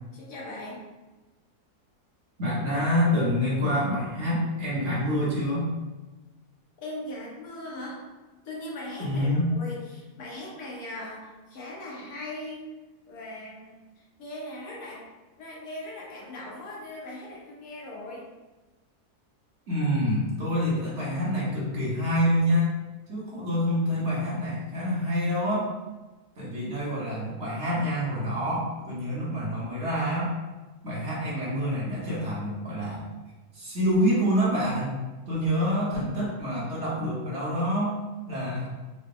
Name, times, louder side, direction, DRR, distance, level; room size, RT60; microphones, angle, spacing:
voice 1, 0.1-0.9 6.8-8.0 8.4-12.7 13.1-15.1 15.4-18.3, left 1 dB, 70° left, -3 dB, 1.3 m, -39 dB
voice 2, 2.4-5.7 9.0-9.5 19.7-22.7 23.1-25.7 26.4-30.3 30.8-33.1 33.5-35.0 35.3-38.0 38.3-38.7, equal, 50° right, -7 dB, 1.2 m, -27 dB
3.9 x 2.1 x 3.6 m, 1.2 s
omnidirectional pair, 1.7 m